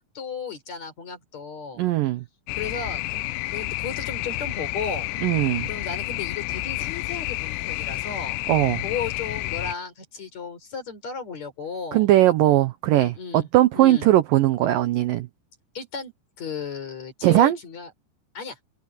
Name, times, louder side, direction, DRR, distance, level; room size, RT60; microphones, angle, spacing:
voice 1, 0.0-1.8 2.6-5.1 5.7-8.4 8.8-12.1 12.9-13.5 13.7-14.1 15.8-16.1 16.4-17.9 18.3-18.6, left 5 dB, 40° left, 5.2 m, -35 dB
voice 2, 1.8-2.2 5.2-5.7 8.5-8.8 11.9-15.3 17.2-17.6, right 14 dB, 80° right, 2.0 m, -19 dB
sound 1, 2.5-9.7, left 19 dB, 80° left, 2.8 m, -30 dB
omnidirectional pair, 5.1 m